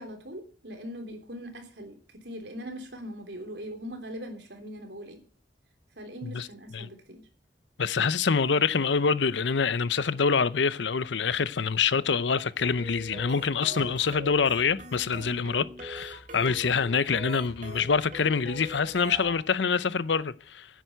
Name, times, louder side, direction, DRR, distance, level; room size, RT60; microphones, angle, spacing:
voice 1, 0.0-5.2 6.0-7.2, equal, 75° right, 3.3 m, -41 dB
voice 2, 7.8-20.7, left 5 dB, 85° left, 0.7 m, -26 dB
sound 1, 12.6-19.4, right 2 dB, 45° right, 2.6 m, -42 dB
10.0 x 9.3 x 8.0 m
head